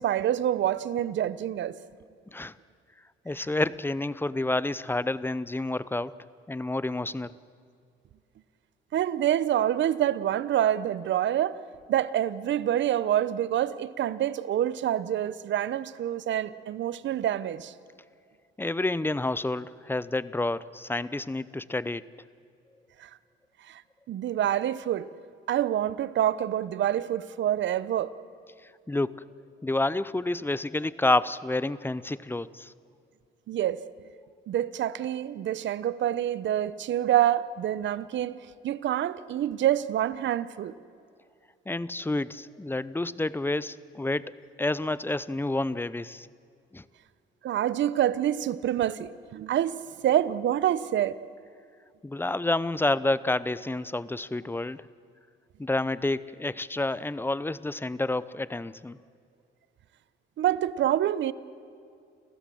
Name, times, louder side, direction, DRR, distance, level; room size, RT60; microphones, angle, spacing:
voice 1, 0.0-1.8 8.9-11.6 11.9-17.7 23.0-23.1 23.7-23.8 24.1-25.1 25.5-28.1 33.5-33.8 34.5-38.4 38.6-40.7 47.4-51.1 60.4-61.3, right 11 dB, 70° right, 0.8 m, -27 dB
voice 2, 3.3-6.1 6.5-7.3 18.6-22.1 28.9-29.3 29.6-32.7 41.7-44.3 44.6-46.3 46.7-46.8 52.0-54.8 55.6-59.0, left 2 dB, 10° left, 0.6 m, -29 dB
29.0 x 15.5 x 7.8 m
cardioid pair, 90°, 20 cm